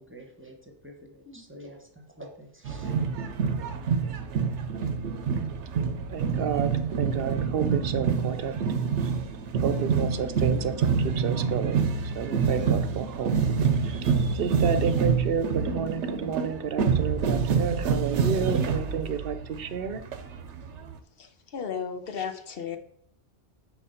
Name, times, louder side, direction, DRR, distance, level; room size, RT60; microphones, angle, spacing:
voice 1, 0.0-3.1, equal, 10° right, 2 dB, 1.1 m, -47 dB
sound 1, 2.6-20.9, right 6 dB, 90° right, 1.0 m, -27 dB
voice 2, 6.1-6.7 7.0-8.6 9.6-13.3 13.8-14.0 14.3-20.0, right 7 dB, 60° right, 10 dB, 0.8 m, -30 dB
voice 3, 21.5-22.8, left 7 dB, 60° left, 7 dB, 1.0 m, -33 dB
6.7 x 4.8 x 5.7 m, 0.69 s
omnidirectional pair, 1.2 m